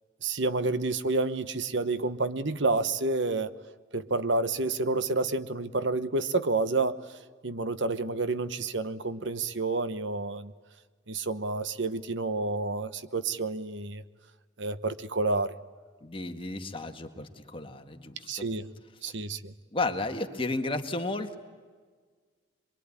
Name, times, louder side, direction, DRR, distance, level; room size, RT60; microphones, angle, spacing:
voice 1, 0.2-3.5 3.9-7.0 7.4-10.5 11.1-14.0 14.6-15.5 18.3-18.7 19.0-19.5, right 3 dB, 70° right, 12 dB, 1.1 m, -29 dB
voice 2, 16.0-18.5 19.0-19.1 19.7-21.4, left 2 dB, 30° left, 5 dB, 1.9 m, -33 dB
24.5 x 23.5 x 9.8 m, 1.5 s
head